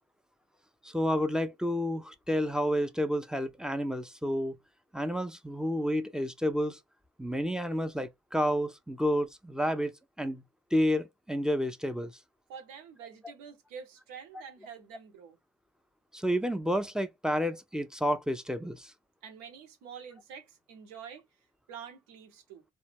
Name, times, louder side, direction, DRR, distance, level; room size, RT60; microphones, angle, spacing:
voice 1, 0.8-4.6 4.9-6.8 7.2-10.4 10.7-12.1 16.1-18.9, equal, ahead, 0.4 m, -30 dB
voice 2, 12.5-15.4 19.2-21.2 21.7-22.6, right 7 dB, 75° right, 0.9 m, -47 dB
2.1 x 2.0 x 3.2 m
hypercardioid pair, 45°, 34 cm